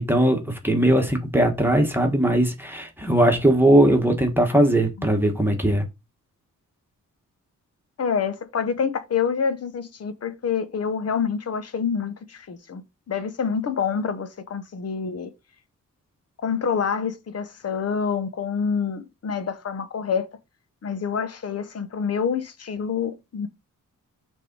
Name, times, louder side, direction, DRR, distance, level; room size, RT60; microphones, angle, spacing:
voice 1, 0.0-5.8, right 1 dB, 5° right, 1.4 m, -19 dB
voice 2, 8.0-15.3 16.4-20.3 20.8-23.5, left 6 dB, 50° left, 1.0 m, -27 dB
6.5 x 3.6 x 5.4 m
wide cardioid pair, 150°, 32 cm